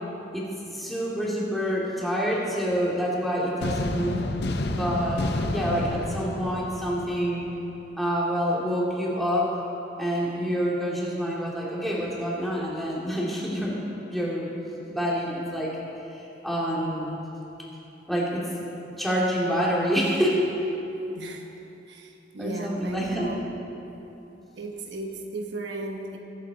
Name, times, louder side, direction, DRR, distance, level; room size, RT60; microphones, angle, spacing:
voice 1, 0.3-4.2 4.7-7.5 8.0-9.5 10.0-14.5 14.9-15.8 16.1-17.3 18.1-18.5 19.0-20.5 22.4-23.3, equal, ahead, -6 dB, 2.4 m, -27 dB
sound 1, 3.6-7.6, left 2 dB, 60° left, 0.7 m, -30 dB
voice 2, 21.1-21.5 21.9-23.4 24.6-26.2, right 2 dB, 75° right, 2 dB, 1.1 m, -35 dB
22.0 x 8.5 x 4.0 m, 3.0 s
head